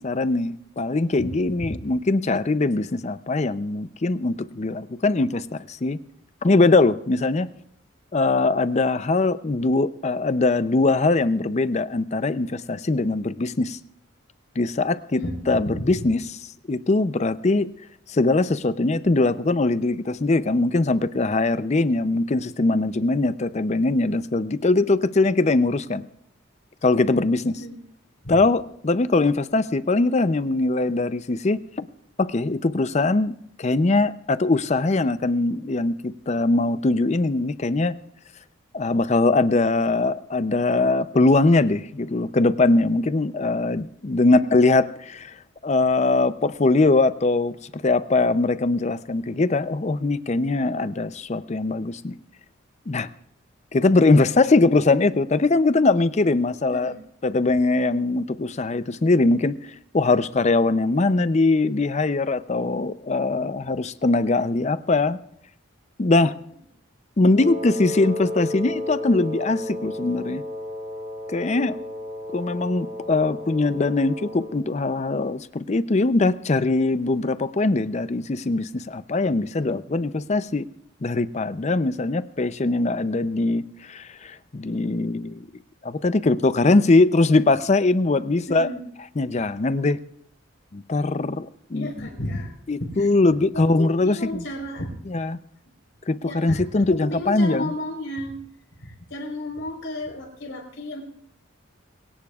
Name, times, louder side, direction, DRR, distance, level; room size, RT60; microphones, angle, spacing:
voice 1, 0.0-6.0 6.4-7.5 8.1-13.8 14.6-15.2 15.5-16.2 16.7-17.7 18.1-26.1 26.8-27.6 28.3-31.6 32.2-38.0 38.7-45.4 45.6-52.2 52.9-53.1 53.7-56.9 57.2-65.2 66.0-66.4 67.2-70.4 71.3-71.8 72.3-80.7 81.0-85.4 85.8-88.7 89.2-90.0 90.7-92.1 92.7-94.5 95.1-95.4 96.1-97.7, left 3 dB, 35° left, 14 dB, 0.5 m, -21 dB
Wind instrument woodwind instrument, 67.4-74.7, left 1 dB, 35° right, 2.1 m, -33 dB
voice 2, 88.5-88.8 91.7-92.5 92.8-93.1 93.5-94.9 96.2-98.4 98.8-101.0, left 1 dB, 65° left, 1 dB, 4.1 m, -33 dB
22.0 x 17.5 x 2.4 m, 0.71 s
head